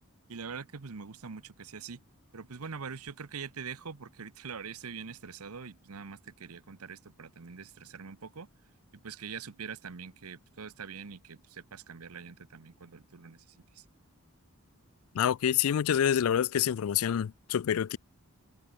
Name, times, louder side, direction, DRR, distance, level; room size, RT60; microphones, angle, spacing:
voice 1, 0.3-2.0 2.3-8.5 8.9-13.4 13.7-13.8, right 6 dB, 80° right, 0.9 m, -43 dB
voice 2, 15.1-18.0, left 9 dB, 70° left, 0.4 m, -27 dB
head